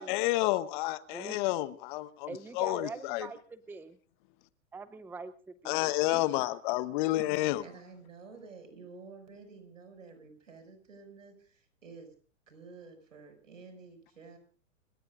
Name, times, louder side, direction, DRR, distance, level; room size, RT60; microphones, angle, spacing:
voice 1, 0.0-3.3 5.6-7.6, left 17 dB, 40° left, 1.0 m, -30 dB
voice 2, 2.3-4.0 4.7-6.2, right 4 dB, 5° right, 0.7 m, -44 dB
voice 3, 7.6-12.1 12.5-14.4, right 4 dB, 80° right, 6.6 m, -51 dB
29.5 x 17.0 x 2.6 m
hypercardioid pair, 115°, 38 cm